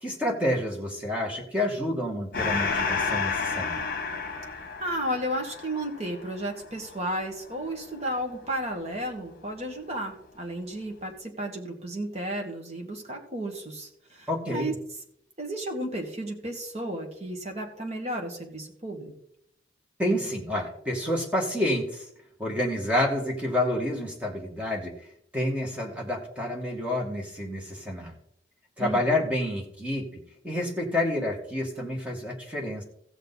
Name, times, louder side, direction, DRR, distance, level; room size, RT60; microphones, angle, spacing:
voice 1, 0.0-3.9 14.3-14.7 20.0-22.0 22.4-24.9 25.3-28.1 28.8-32.8, left 1 dB, 5° right, -1 dB, 2.0 m, -29 dB
Gong, 2.3-9.3, left 4 dB, 50° left, 1.2 m, -32 dB
voice 2, 4.8-14.7 15.4-19.1 28.8-29.0, right 1 dB, 35° right, 2 dB, 1.9 m, -33 dB
16.0 x 6.8 x 4.1 m, 0.72 s
head